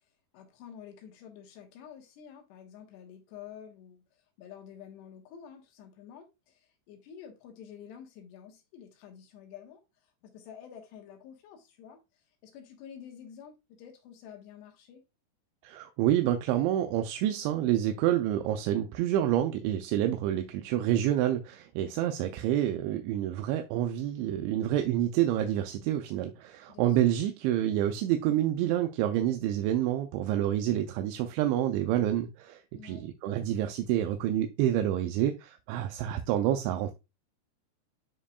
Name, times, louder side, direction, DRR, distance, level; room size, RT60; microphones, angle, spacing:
voice 1, 0.3-4.0 4.4-15.0 26.7-27.1 32.7-33.0, left 8 dB, 70° left, 3.2 m, -49 dB
voice 2, 15.6-36.9, right 12 dB, 80° right, 2.8 m, -28 dB
9.9 x 4.5 x 2.3 m
omnidirectional pair, 5.5 m